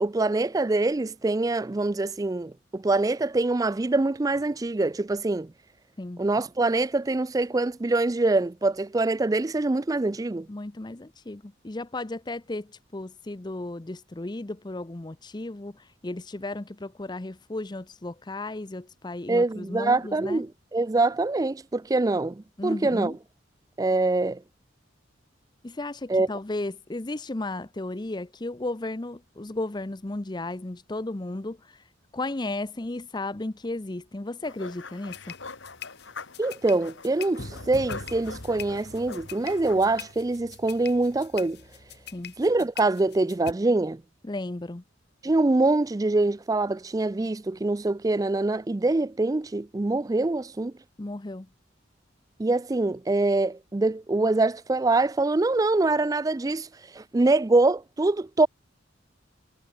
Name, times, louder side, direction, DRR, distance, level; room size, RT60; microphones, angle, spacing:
voice 1, 0.0-5.5 6.2-10.5 19.3-23.1 23.8-24.4 26.1-26.3 36.4-41.6 42.4-44.0 45.2-50.7 52.4-56.7 56.9-58.5, right 2 dB, 20° right, 0.4 m, -24 dB
voice 2, 10.5-20.4 22.6-23.2 25.6-31.8 32.1-35.3 42.1-42.3 44.2-44.8 51.0-51.5, left 2 dB, 20° left, 0.6 m, -34 dB
sound 1, 34.4-40.1, left 4 dB, 75° left, 3.6 m, -43 dB
sound 2, 35.1-43.5, left 5 dB, 55° left, 2.4 m, -42 dB
head